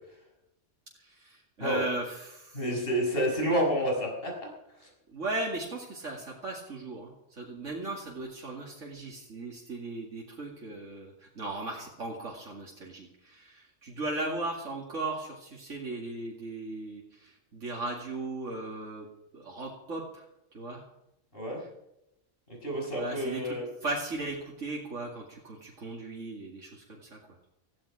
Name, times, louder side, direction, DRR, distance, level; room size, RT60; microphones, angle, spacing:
voice 1, 1.0-2.6 5.1-19.1 19.3-20.2 20.5-20.9 21.6-21.7 22.9-27.2, right 2 dB, 80° right, -3 dB, 2.8 m, -37 dB
voice 2, 2.5-4.3 4.8-4.9 21.3-21.6 22.5-23.7, equal, 50° left, -1 dB, 6.3 m, -29 dB
17.5 x 15.5 x 4.9 m, 0.84 s
omnidirectional pair, 1.3 m